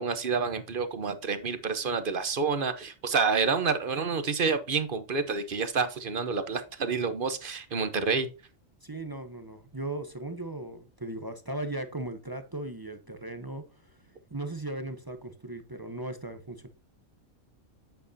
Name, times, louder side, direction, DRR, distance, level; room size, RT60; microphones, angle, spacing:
voice 1, 0.0-8.3, right 5 dB, 45° right, 0.9 m, -28 dB
voice 2, 8.8-13.6 14.3-16.7, right 2 dB, 20° right, 0.6 m, -37 dB
9.0 x 8.0 x 2.7 m
omnidirectional pair, 1.4 m